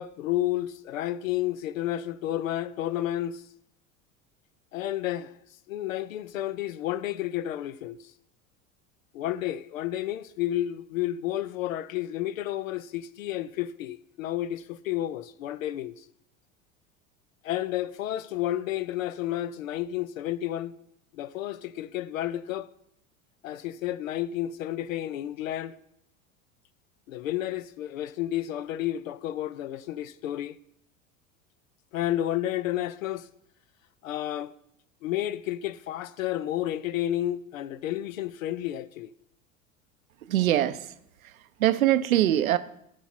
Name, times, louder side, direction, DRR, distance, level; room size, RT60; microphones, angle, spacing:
voice 1, 0.0-3.4 4.7-5.3 5.7-8.1 9.1-16.1 17.4-20.7 21.1-22.7 23.4-25.8 27.1-30.6 31.9-33.3 34.0-34.5 35.0-39.1, left 13 dB, 75° left, 0.5 m, -31 dB
voice 2, 40.3-40.9 41.2-41.3 41.6-42.6, right 13 dB, 80° right, 0.6 m, -23 dB
14.0 x 4.8 x 4.3 m
hypercardioid pair, 75°, 41 cm